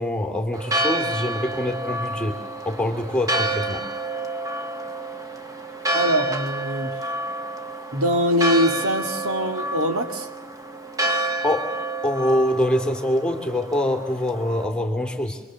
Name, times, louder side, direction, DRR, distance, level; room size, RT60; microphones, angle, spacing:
voice 1, 0.0-2.4 2.6-3.9 11.1-11.7 12.0-15.4, left 1 dB, 5° left, 5 dB, 2.5 m, -24 dB
Church bell, 0.5-14.6, right 1 dB, 15° right, 1.8 m, -29 dB
voice 2, 5.9-7.0 7.9-10.3, equal, 70° right, 5 dB, 2.8 m, -23 dB
29.0 x 23.0 x 7.6 m, 1.0 s
head